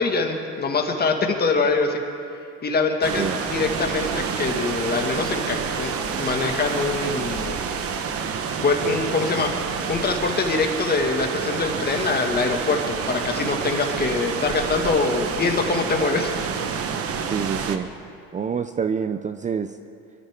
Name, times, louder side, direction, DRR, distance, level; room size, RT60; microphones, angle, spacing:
voice 1, 0.0-2.0 2.6-7.6 8.6-9.5 9.9-16.3, left 4 dB, 30° left, 2 dB, 2.2 m, -24 dB
sound 1, 3.0-17.8, right 6 dB, 50° right, 1.2 m, -28 dB
voice 2, 3.2-3.7 17.2-17.9 18.3-19.8, right 6 dB, 25° right, 10 dB, 0.5 m, -27 dB
25.0 x 13.5 x 3.8 m, 2.4 s
supercardioid pair, 95°, 29 cm